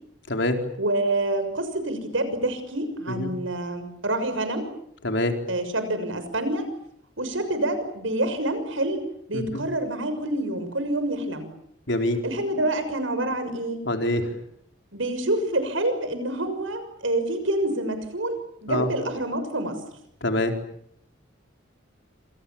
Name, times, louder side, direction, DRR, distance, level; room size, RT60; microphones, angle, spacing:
voice 1, 0.8-4.7 5.5-6.6 7.2-9.0 9.3-11.5 12.2-13.8 14.9-19.8, right 1 dB, 85° right, 10 dB, 6.5 m, -27 dB
voice 2, 11.9-12.2 13.8-14.3 18.7-18.9 20.2-20.5, left 1 dB, 65° left, 5 dB, 4.3 m, -24 dB
28.0 x 27.0 x 7.3 m, 0.70 s
head